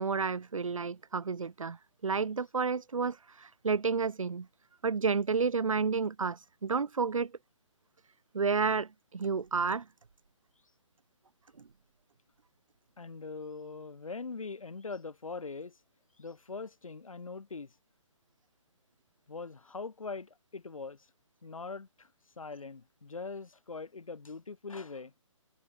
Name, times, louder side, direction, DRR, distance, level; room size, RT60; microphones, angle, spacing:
voice 1, 0.0-1.8 2.0-4.5 4.8-7.3 8.3-9.8, right 5 dB, 80° right, 2.7 m, -30 dB
voice 2, 13.0-15.7 16.2-17.7 19.3-21.0 21.4-22.1 22.4-25.1, left 4 dB, 90° left, 7.9 m, -42 dB
hypercardioid pair, 160°, 17 cm